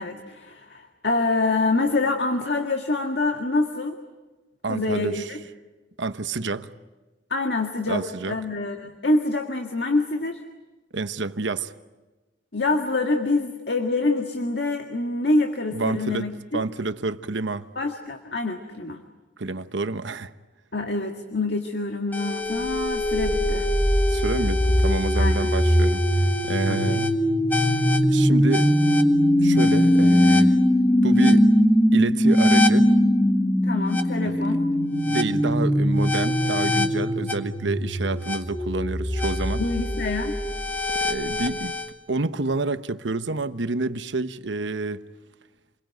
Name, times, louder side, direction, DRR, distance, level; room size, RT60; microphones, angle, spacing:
voice 1, 0.0-4.0 4.7-5.4 7.3-10.4 12.5-16.4 17.8-19.0 20.7-23.7 25.2-25.5 26.7-27.0 33.6-34.7 39.6-40.4, left 2 dB, 60° left, 1.9 m, -26 dB
voice 2, 4.6-5.3 6.0-6.7 7.9-8.4 10.9-11.7 15.7-17.7 19.4-20.3 24.1-26.0 26.4-27.0 28.1-28.7 29.4-30.6 31.0-31.5 31.9-32.9 34.2-34.5 35.0-39.6 41.0-41.7 42.1-45.0, right 3 dB, 75° right, 1.0 m, -28 dB
sound 1, 22.1-41.9, equal, 10° left, 1.5 m, -21 dB
28.5 x 22.5 x 9.2 m
head